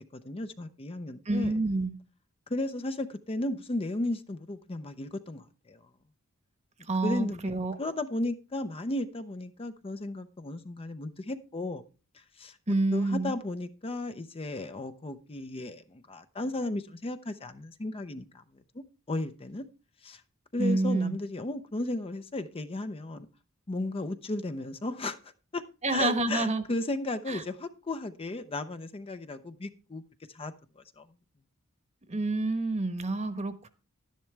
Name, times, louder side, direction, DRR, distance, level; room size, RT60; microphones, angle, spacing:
voice 1, 0.2-1.6 2.5-5.8 7.0-7.4 7.8-11.8 12.1-12.6 12.9-18.4 19.1-19.6 20.0-20.2 20.5-23.3 23.7-25.2 25.5-25.6 25.9-30.0 30.3-31.1, left 2 dB, 25° left, 0.6 m, -35 dB
voice 2, 1.3-2.0 6.9-7.8 12.7-13.4 20.6-21.2 25.8-26.6 27.3-27.4 32.1-33.7, right 2 dB, 30° right, 1.1 m, -28 dB
11.5 x 10.5 x 3.3 m
head